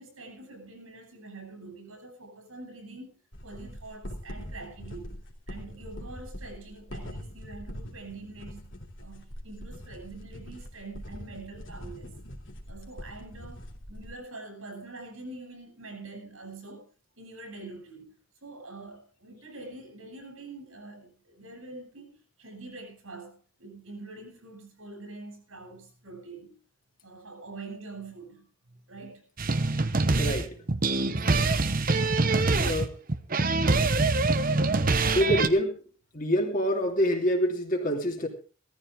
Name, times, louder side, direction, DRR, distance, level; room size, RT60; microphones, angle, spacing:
voice 1, 0.0-5.2 5.5-8.7 9.0-12.2 12.7-16.9 17.2-18.1 18.4-26.6 27.0-29.3 30.9-31.4, right 3 dB, 75° right, 7.7 m, -45 dB
sound 1, 3.3-14.1, equal, 60° left, 3.1 m, -42 dB
sound 2, 29.4-35.5, right 3 dB, 40° right, 0.9 m, -24 dB
voice 2, 32.3-33.0 35.1-35.8 36.1-38.3, equal, 40° left, 2.8 m, -26 dB
18.0 x 14.0 x 3.7 m
head